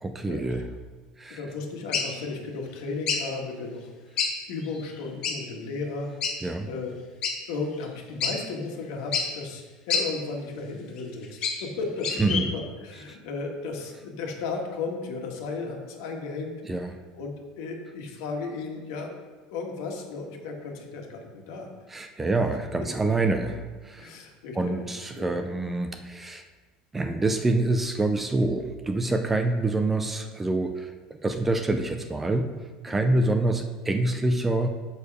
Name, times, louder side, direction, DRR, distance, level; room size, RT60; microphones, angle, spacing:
voice 1, 0.0-0.7 1.2-1.4 6.4-6.7 12.2-12.5 13.1-13.2 16.7-17.0 21.9-24.1 24.6-26.4 26.9-32.5 32.8-34.7, right 2 dB, 10° right, 7 dB, 0.4 m, -26 dB
voice 2, 1.3-6.1 6.6-6.9 7.5-16.5 17.2-19.1 19.5-21.7 22.2-22.3 24.0-24.9 25.2-25.4 32.9-33.2, left 3 dB, 70° left, 1 dB, 1.7 m, -35 dB
sound 1, 1.9-2.1 3.1-3.2 4.2-4.3 4.6-4.7 5.2-5.4 6.2-6.3 7.2-7.3 7.8-7.9 8.2-8.3 9.1-9.3 9.9-10.0 11.0-11.7 12.0-12.4, left 5 dB, 35° left, 1.1 m, -26 dB
7.1 x 6.6 x 4.8 m, 1.3 s
cardioid pair, 175°, 2 cm